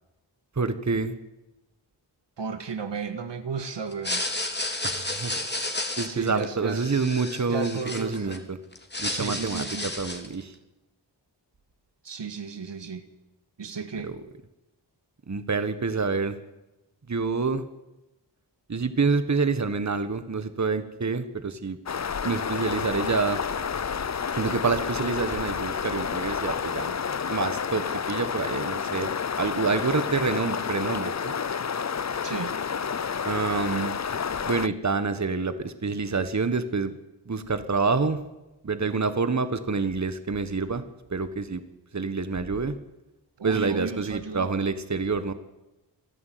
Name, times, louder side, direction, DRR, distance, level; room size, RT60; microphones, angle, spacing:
voice 1, 0.6-1.2 4.8-5.3 6.0-8.6 9.0-10.5 14.0-14.2 15.3-16.3 17.1-17.6 18.7-21.8 22.2-23.4 24.3-27.0 27.3-29.1 29.4-31.3 33.2-34.0 34.4-36.9 37.3-38.2 38.6-40.8 41.1-41.6 41.9-42.7 43.4-45.3, right 4 dB, 40° right, 11 dB, 1.6 m, -27 dB
voice 2, 2.4-4.3 6.0-6.9 7.5-8.4 9.1-9.9 12.0-13.0 13.6-14.1 32.2-32.5 43.4-44.5, right 5 dB, 80° right, 9 dB, 1.9 m, -34 dB
sound 1, 3.9-8.4 8.7-10.3, left 2 dB, 25° left, 3.1 m, -32 dB
sound 2, 21.9-34.7, left 6 dB, 40° left, 0.7 m, -30 dB
28.0 x 11.0 x 9.4 m, 0.99 s
wide cardioid pair, 80°, 43 cm